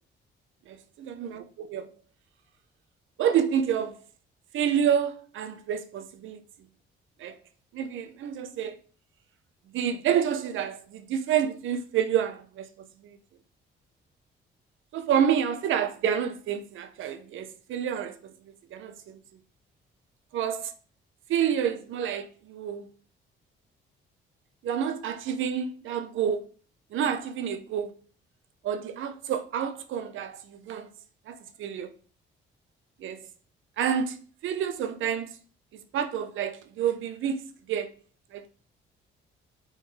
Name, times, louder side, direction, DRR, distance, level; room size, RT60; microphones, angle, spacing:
voice 1, 0.7-1.9 3.2-4.0 4.5-6.4 7.2-7.4 7.7-8.8 9.7-13.2 14.9-18.3 18.7-19.2 20.3-20.7 21.3-22.9 24.6-26.5 26.9-28.0 28.6-30.9 31.3-31.9 33.0-33.2 33.8-34.2 34.4-35.4 35.7-37.9 38.3-38.5, right 8 dB, 80° right, 0.9 m, -29 dB
6.3 x 4.2 x 4.9 m
cardioid pair, 90°, 20 cm